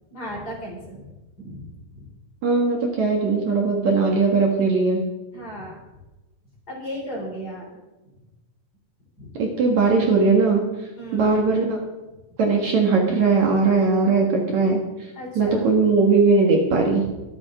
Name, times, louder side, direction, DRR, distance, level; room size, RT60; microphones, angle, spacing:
voice 1, 0.1-1.1 1.4-1.7 1.9-2.1 5.3-5.8 6.7-7.8 9.2-9.3 11.0-11.5 15.1-15.7, equal, 25° left, -2 dB, 3.9 m, -35 dB
voice 2, 2.4-5.0 9.4-10.6 11.1-11.8 12.4-14.8 15.4-17.0, right 4 dB, 55° right, 0 dB, 2.8 m, -19 dB
24.0 x 8.8 x 3.7 m, 1.1 s
omnidirectional pair, 4.2 m